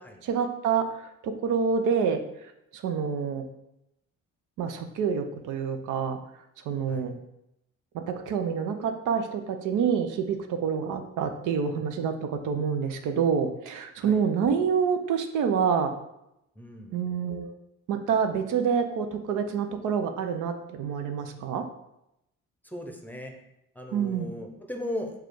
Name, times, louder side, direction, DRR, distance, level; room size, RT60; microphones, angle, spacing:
voice 1, 0.2-0.8 1.2-2.2 2.7-3.4 4.6-6.2 6.7-7.1 7.9-15.9 16.9-17.5 17.9-21.6 23.9-24.3, right 6 dB, 85° right, 7 dB, 0.6 m, -27 dB
voice 2, 16.6-17.0 22.7-23.3 23.8-25.1, left 1 dB, 5° left, 3 dB, 0.6 m, -36 dB
4.9 x 2.4 x 4.5 m, 0.83 s
cardioid pair, 90°, 30 cm